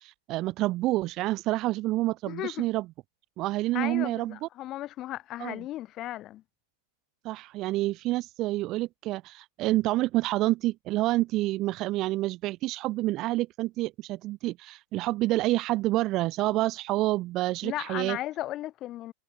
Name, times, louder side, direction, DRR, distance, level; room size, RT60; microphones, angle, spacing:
voice 1, 0.0-2.8 3.4-4.5 5.4-5.6 7.2-18.2, right 17 dB, 35° right, 1.0 m, -28 dB
voice 2, 2.3-2.6 3.7-6.4 17.6-19.1, left 14 dB, 35° left, 5.2 m, -35 dB
figure-of-eight pair, 90°, 0 cm